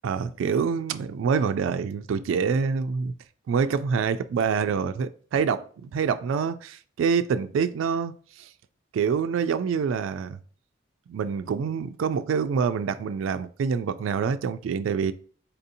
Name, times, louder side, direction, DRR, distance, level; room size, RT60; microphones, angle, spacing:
voice 1, 0.0-3.1 3.5-8.5 8.9-10.4 11.1-15.1, right 6 dB, 85° right, 0.3 m, -26 dB
4.2 x 2.7 x 2.6 m
head